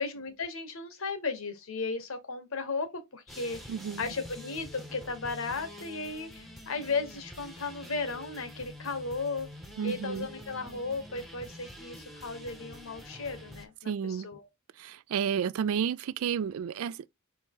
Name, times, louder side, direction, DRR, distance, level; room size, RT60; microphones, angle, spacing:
voice 1, 0.0-3.6 4.0-9.5 9.8-14.5, left 4 dB, 75° left, 1.1 m, -35 dB
sound 1, 3.3-13.7, left 1 dB, ahead, 0.7 m, -47 dB
voice 2, 3.7-4.0 9.8-10.3 13.9-14.3 14.8-17.1, right 7 dB, 80° right, 0.3 m, -31 dB
4.2 x 2.8 x 3.6 m
head